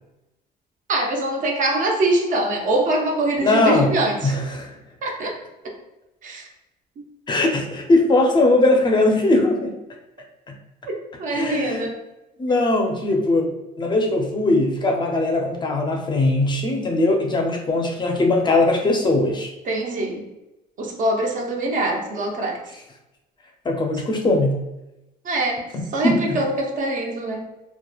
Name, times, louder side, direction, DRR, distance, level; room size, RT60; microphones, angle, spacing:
voice 1, 0.9-4.3 5.0-5.3 6.2-6.5 10.9-12.0 19.6-20.2 20.8-22.6 23.9-24.0 25.2-25.6 25.9-27.5, right 1 dB, 50° right, 1 dB, 0.6 m, -23 dB
voice 2, 3.4-4.0 4.2-4.8 7.3-9.7 10.5-10.6 11.3-11.9 12.4-19.5 23.6-24.6 25.7-26.4, left 2 dB, 25° left, 1 dB, 0.4 m, -20 dB
2.9 x 2.1 x 2.3 m, 0.95 s
cardioid pair, 110°, 17 cm